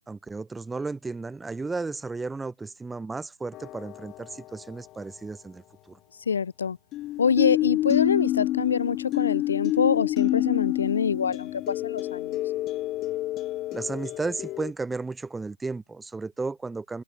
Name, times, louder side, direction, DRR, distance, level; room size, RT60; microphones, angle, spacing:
voice 1, 0.0-6.0 13.7-17.0, right 3 dB, 5° right, 1.6 m, -34 dB
sound 1, 3.5-4.4 6.9-14.7, left 15 dB, 10° left, 0.7 m, -28 dB
voice 2, 6.3-6.8 7.2-12.4, left 6 dB, 55° left, 0.8 m, -25 dB
hypercardioid pair, 170°, 0 cm